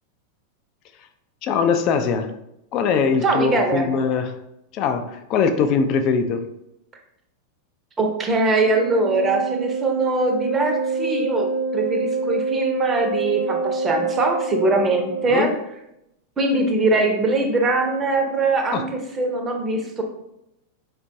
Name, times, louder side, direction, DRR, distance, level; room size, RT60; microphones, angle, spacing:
voice 1, 1.4-2.3 2.7-4.4 4.7-6.5 15.3-15.5 18.7-18.9, left 5 dB, 40° left, 8 dB, 0.3 m, -21 dB
voice 2, 3.2-3.8 8.0-15.5 16.4-20.0, right 2 dB, 20° right, 3 dB, 0.6 m, -22 dB
Wind instrument woodwind instrument, 8.6-15.6, right 4 dB, 65° right, 0.3 m, -26 dB
4.4 x 2.2 x 2.6 m, 0.83 s
figure-of-eight pair, 90°, 0 cm